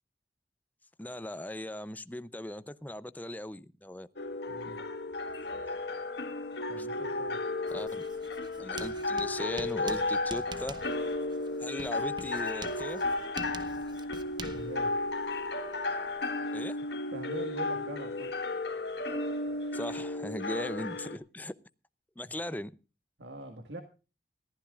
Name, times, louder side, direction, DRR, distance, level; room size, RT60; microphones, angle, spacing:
voice 1, 1.0-4.1 6.7-6.9 7.7-7.9 8.6-10.7 11.6-13.1 16.5-16.8 19.7-21.6 22.2-22.7, left 1 dB, 10° left, 0.6 m, -38 dB
sound 1, 4.2-21.2, left 2 dB, 70° left, 1.7 m, -34 dB
voice 2, 4.5-4.8 6.7-7.4 14.5-15.0 17.1-18.4 22.2-22.6 23.2-23.8, right 1 dB, 90° right, 1.8 m, -43 dB
Writing, 7.7-16.3, right 3 dB, 25° right, 0.9 m, -47 dB
21.5 x 15.0 x 2.4 m
head